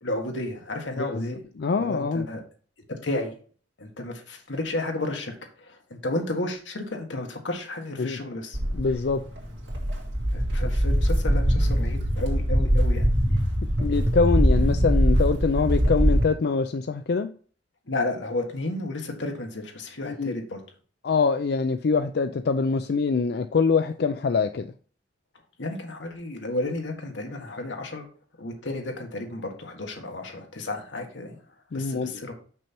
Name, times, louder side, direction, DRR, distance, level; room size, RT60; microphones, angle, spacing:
voice 1, 0.0-1.4 1.8-2.4 2.9-3.3 3.8-8.6 10.3-13.1 17.9-20.6 25.6-28.1 28.4-31.4 31.7-32.3, left 2 dB, 90° left, 1.6 m, -32 dB
voice 2, 1.0-2.3 8.0-8.2 8.7-9.2 13.8-17.3 20.0-20.4 21.0-24.7 31.7-32.2, left 4 dB, 60° left, 0.4 m, -24 dB
Walk footsteps, 8.5-16.2, equal, 80° right, 2.2 m, -22 dB
6.1 x 5.7 x 4.4 m
head